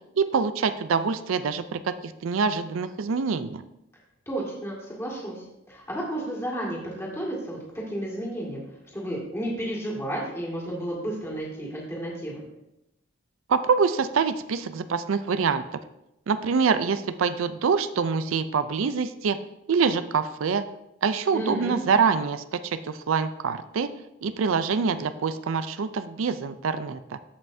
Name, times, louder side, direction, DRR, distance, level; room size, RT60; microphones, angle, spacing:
voice 1, 0.2-3.6 13.5-15.6 16.3-19.4 19.7-20.7 21.0-23.9 24.2-27.2, right 5 dB, 80° right, 12 dB, 0.4 m, -25 dB
voice 2, 4.3-8.6 8.9-12.4 21.3-21.8, right 1 dB, 10° left, -5 dB, 2.0 m, -32 dB
14.5 x 5.5 x 2.7 m, 0.87 s
head